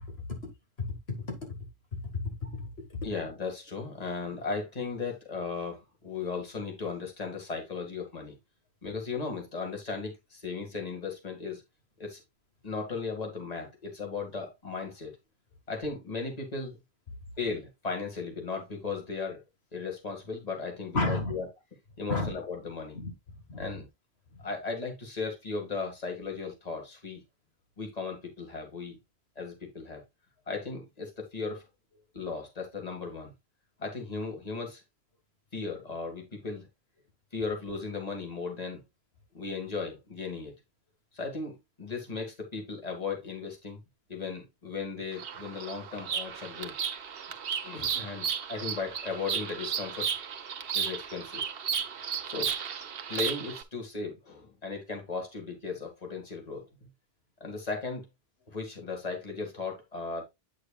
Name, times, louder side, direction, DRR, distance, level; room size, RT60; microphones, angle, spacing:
voice 1, 0.8-1.6 2.1-3.1 20.9-21.3 22.1-22.3 22.9-23.1 23.5-23.7, left 3 dB, 80° left, 2.1 m, -32 dB
voice 2, 3.0-8.3 8.8-11.6 12.0-12.2 12.6-15.2 15.7-16.8 17.4-19.4 19.7-21.4 22.0-23.0 23.6-23.8 24.4-27.2 27.8-29.0 29.4-30.0 30.5-31.6 32.1-33.3 33.8-34.8 35.5-36.7 37.3-38.8 39.3-40.5 41.1-43.8 44.1-46.7 47.6-50.1 50.7-51.4 52.3-52.5 53.1-56.7 57.4-58.1 58.5-60.2, left 4 dB, 40° left, 2.1 m, -36 dB
Bird vocalization bird call bird song, 45.1-53.6, right 7 dB, 70° right, 1.0 m, -34 dB
8.5 x 6.4 x 2.3 m
omnidirectional pair, 1.0 m